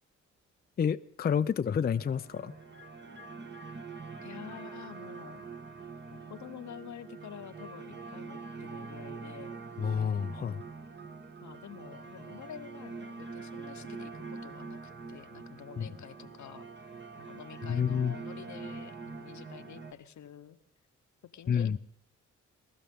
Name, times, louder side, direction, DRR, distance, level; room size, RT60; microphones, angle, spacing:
voice 1, 0.8-2.5 9.8-10.6 15.8-15.9 17.6-18.2 21.5-21.8, left 7 dB, 30° left, 0.4 m, -29 dB
sound 1, 1.9-19.9, right 4 dB, 35° right, 1.3 m, -44 dB
voice 2, 4.2-5.7 6.1-9.6 11.4-16.7 17.2-20.6 21.3-21.7, left 9 dB, 65° left, 0.9 m, -48 dB
21.5 x 12.5 x 3.6 m
cardioid pair, 60°, 31 cm